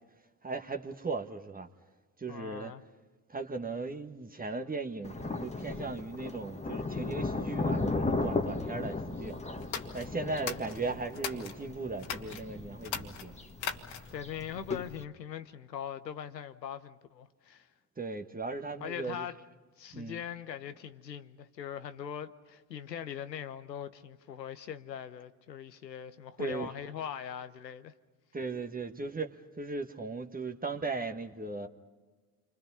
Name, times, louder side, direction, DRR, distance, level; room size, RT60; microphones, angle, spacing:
voice 1, 0.4-1.7 2.2-2.7 3.3-9.4 9.9-13.4 18.0-19.3 19.9-20.2 26.4-26.7 28.3-31.7, right 3 dB, 15° right, 1.6 m, -37 dB
voice 2, 2.3-2.8 10.2-10.6 14.1-17.7 18.8-19.3 19.8-27.9, left 9 dB, 85° left, 1.1 m, -41 dB
Thunder, 5.0-15.0, left 3 dB, 15° left, 1.7 m, -36 dB
sound 1, 9.6-11.6 12.0-12.4 12.8-14.2, left 8 dB, 60° left, 2.3 m, -39 dB
29.5 x 25.0 x 5.6 m
figure-of-eight pair, 60°, 49 cm